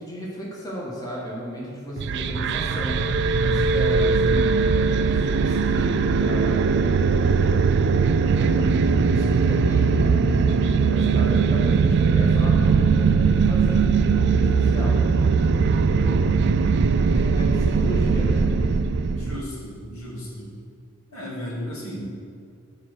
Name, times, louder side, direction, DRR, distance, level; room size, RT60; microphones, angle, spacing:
voice 1, 0.0-3.1 3.4-6.6 6.9-7.7 8.1-10.6 10.9-15.0 15.4-16.3 16.9-18.4, equal, 20° left, -5 dB, 1.5 m, -35 dB
sound 1, 2.0-19.4, right 5 dB, 55° right, 0.3 m, -20 dB
voice 2, 19.1-20.5 21.1-22.1, equal, 80° left, -5 dB, 2.4 m, -34 dB
8.7 x 4.9 x 6.4 m, 2.3 s
head